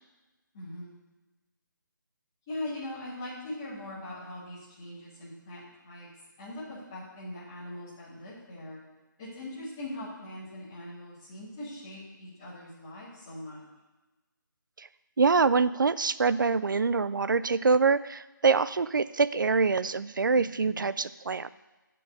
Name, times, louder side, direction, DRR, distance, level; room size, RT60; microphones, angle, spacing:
voice 1, 0.5-0.9 2.5-6.1 6.4-8.8 9.2-13.6 20.4-20.8, left 1 dB, 10° left, -9 dB, 1.5 m, -41 dB
voice 2, 15.2-21.5, right 4 dB, 70° right, 16 dB, 0.4 m, -25 dB
7.6 x 5.3 x 6.5 m, 1.1 s
figure-of-eight pair, 180°, 11 cm